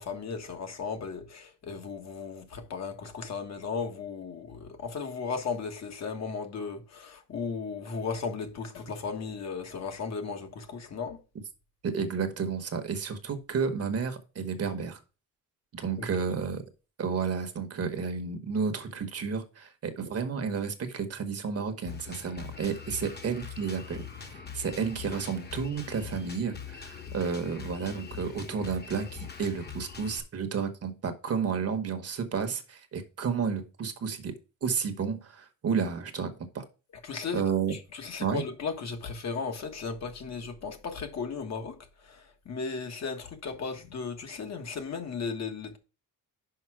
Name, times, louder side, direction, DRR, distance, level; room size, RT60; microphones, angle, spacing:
voice 1, 0.0-11.2 16.0-16.3 37.0-37.4 37.7-45.8, left 5 dB, 50° left, 1.4 m, -36 dB
voice 2, 11.8-15.0 15.7-16.6 17.0-34.3 34.6-36.6 37.3-37.7 38.2-38.4, right 6 dB, 45° right, 1.1 m, -31 dB
Drum kit, 21.9-30.2, left 7 dB, 30° left, 1.2 m, -43 dB
5.7 x 5.4 x 4.7 m
cardioid pair, 135°, 34 cm